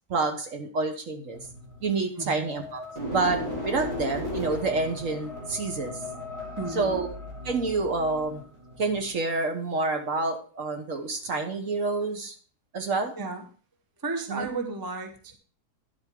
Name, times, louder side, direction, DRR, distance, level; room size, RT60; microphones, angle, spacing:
voice 1, 0.1-1.4 1.8-5.9 6.7-7.1 7.4-8.4 8.8-12.3 12.7-13.1 14.3-14.5, right 3 dB, 55° right, 5 dB, 1.4 m, -28 dB
sound 1, 1.3-9.1, left 1 dB, 40° right, 4.1 m, -36 dB
voice 2, 2.2-2.5 6.6-7.1 13.2-13.4 14.0-15.4, right 3 dB, 15° right, 5 dB, 0.9 m, -33 dB
10.5 x 7.9 x 3.6 m, 0.40 s
omnidirectional pair, 1.7 m